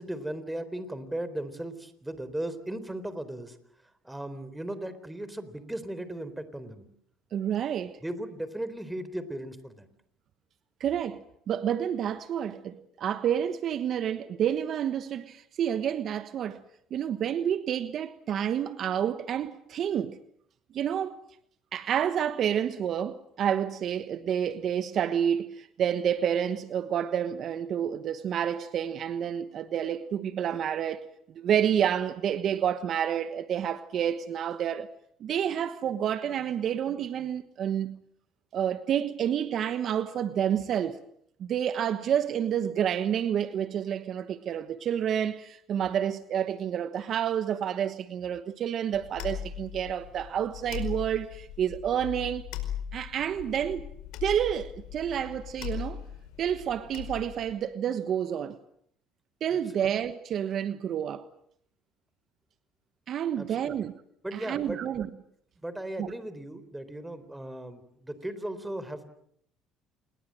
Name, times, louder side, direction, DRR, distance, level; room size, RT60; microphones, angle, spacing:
voice 1, 0.0-3.6 4.0-6.8 8.0-9.9 59.5-59.9 63.4-63.7 64.2-64.8 65.6-69.1, right 1 dB, 10° right, 4.0 m, -37 dB
voice 2, 7.3-8.0 10.8-16.6 16.9-20.2 20.7-21.2 21.7-31.0 31.3-34.9 35.2-38.0 38.5-41.0 41.4-52.5 52.9-53.9 54.2-56.0 56.4-58.6 59.4-61.2 63.1-63.9 64.3-65.1 66.0-66.1, right 9 dB, 55° right, 1.2 m, -29 dB
sound 1, 48.9-57.5, left 10 dB, 75° left, 5.0 m, -39 dB
28.0 x 21.5 x 7.7 m
supercardioid pair, 85°, 0 cm